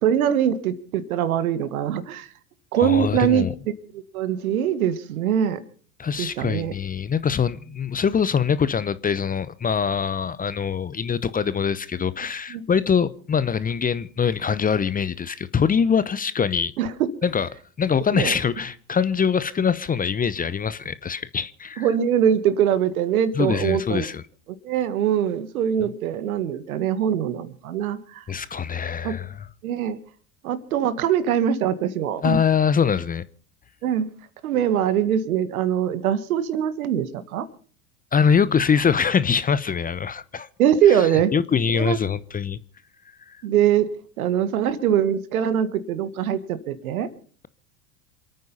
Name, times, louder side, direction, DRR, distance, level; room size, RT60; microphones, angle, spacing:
voice 1, 0.0-2.3 2.7-3.5 3.9-5.6 6.2-6.7 12.5-12.6 16.8-16.9 18.1-18.4 21.8-24.0 24.6-28.2 29.0-29.1 29.6-30.0 30.4-32.4 33.8-34.1 34.4-37.5 40.6-41.3 41.7-42.0 43.4-43.9 44.2-47.1, right 9 dB, 70° right, 1.8 m, -22 dB
voice 2, 2.8-3.5 6.0-16.7 17.2-17.5 17.8-21.9 23.3-24.2 28.3-29.3 32.2-33.2 38.1-40.5 40.9-42.6 43.3-43.4, left 6 dB, 20° left, 0.8 m, -23 dB
27.5 x 9.3 x 5.5 m
hypercardioid pair, 80°, 44 cm